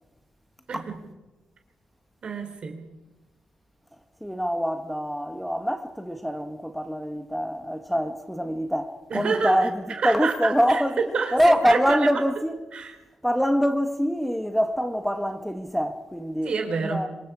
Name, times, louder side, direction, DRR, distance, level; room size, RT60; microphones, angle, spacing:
voice 1, 2.2-2.8 9.1-9.6 10.0-12.2 12.7-12.9 16.4-17.1, right 5 dB, 45° right, 3.7 m, -28 dB
voice 2, 4.2-11.0 11.3-12.6 13.2-16.5 16.8-17.1, equal, ahead, 1.1 m, -24 dB
26.5 x 23.5 x 4.9 m
wide cardioid pair, 170°, 2 cm